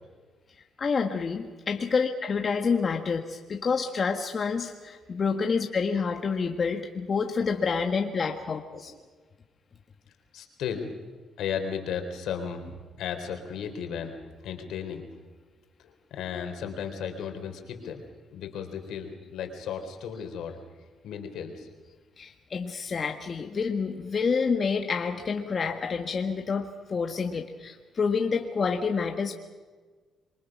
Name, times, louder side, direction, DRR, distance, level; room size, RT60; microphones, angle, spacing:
voice 1, 0.8-8.9 22.2-29.3, left 5 dB, 40° left, 4 dB, 1.7 m, -28 dB
voice 2, 10.3-10.9 11.4-14.2 14.4-15.0 15.8-18.0 18.3-20.6 21.0-21.7, left 7 dB, 80° left, 5 dB, 3.9 m, -35 dB
26.5 x 23.5 x 6.1 m, 1.4 s
cardioid pair, 90°, 0 cm